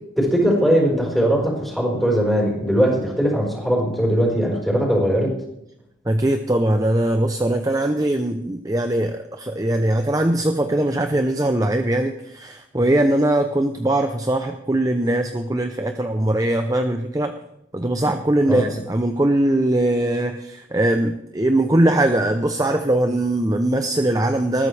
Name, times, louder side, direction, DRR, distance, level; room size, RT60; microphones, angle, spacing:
voice 1, 0.2-5.3 18.5-18.6, equal, ahead, -3 dB, 4.7 m, -20 dB
voice 2, 6.1-17.3 17.7-24.7, right 1 dB, 20° right, 7 dB, 0.6 m, -21 dB
20.0 x 14.0 x 3.4 m, 0.84 s
head